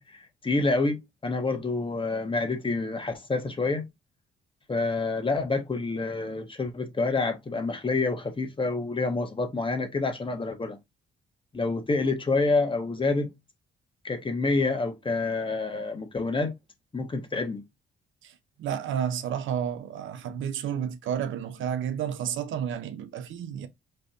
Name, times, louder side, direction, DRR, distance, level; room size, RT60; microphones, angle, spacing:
voice 1, 0.0-3.9 4.7-10.8 11.5-13.3 14.0-16.5 16.9-17.6, left 3 dB, 25° left, 1.4 m, -28 dB
voice 2, 18.6-23.7, right 8 dB, 75° right, 0.8 m, -31 dB
5.1 x 3.3 x 2.6 m
cardioid pair, 90°, 20 cm